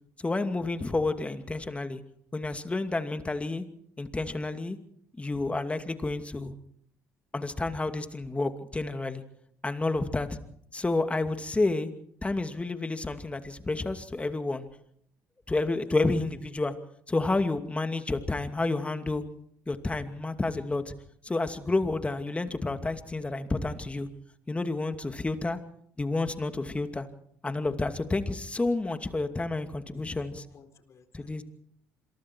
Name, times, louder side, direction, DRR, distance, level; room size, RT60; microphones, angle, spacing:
voice 1, 0.2-2.0 2.3-3.6 4.0-4.8 5.2-6.5 7.3-9.2 9.6-10.4 10.7-11.9 12.2-14.7 15.5-16.7 17.1-19.2 19.7-20.9 21.2-24.1 24.5-25.6 26.0-27.1 27.4-30.4 31.1-31.4, left 2 dB, 20° left, 8 dB, 2.5 m, -30 dB
voice 2, 30.3-31.4, left 6 dB, 50° left, 7 dB, 4.2 m, -55 dB
27.5 x 23.0 x 4.7 m, 0.68 s
hypercardioid pair, 65°, 6 cm